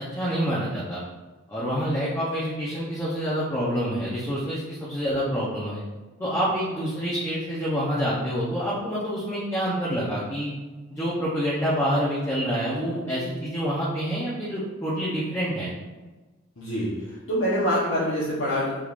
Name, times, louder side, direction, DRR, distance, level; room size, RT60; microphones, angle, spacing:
voice 1, 0.1-1.0 1.5-5.8 6.2-10.5 10.9-15.7, equal, 15° left, -8 dB, 0.7 m, -27 dB
voice 2, 16.6-18.8, equal, 90° left, -8 dB, 0.9 m, -25 dB
4.7 x 3.6 x 2.4 m, 1.2 s
head